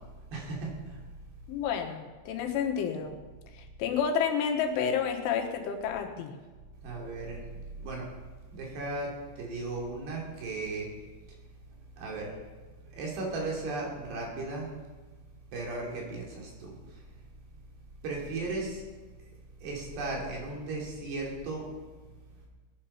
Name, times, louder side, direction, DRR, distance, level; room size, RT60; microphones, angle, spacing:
voice 1, 0.3-0.7 6.8-7.4 7.8-8.1 8.5-9.1 9.4-10.9 12.0-12.3 12.9-14.7 15.5-16.7 18.0-18.9 19.6-21.7, right 3 dB, 65° right, -2 dB, 5.0 m, -35 dB
voice 2, 1.5-3.2 3.6-6.4, left 7 dB, 85° left, 4 dB, 3.8 m, -30 dB
19.0 x 10.0 x 5.6 m, 1.3 s
omnidirectional pair, 5.4 m